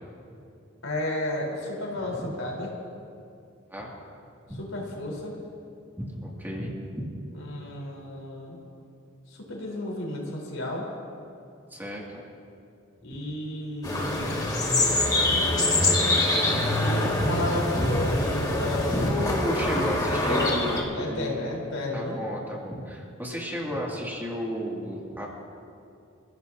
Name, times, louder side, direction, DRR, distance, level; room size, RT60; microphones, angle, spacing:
voice 1, 0.8-2.7 4.6-5.3 7.3-8.6 9.3-10.8 13.0-14.5 16.8-19.1 20.1-20.7 20.9-22.2, left 1 dB, 90° left, -2 dB, 4.1 m, -32 dB
voice 2, 6.0-7.1 11.7-12.2 19.1-21.4 21.9-25.3, equal, 10° right, -3 dB, 2.4 m, -33 dB
sound 1, 13.8-20.8, left 1 dB, 20° left, 2.1 m, -24 dB
29.0 x 16.0 x 2.8 m, 2.5 s
head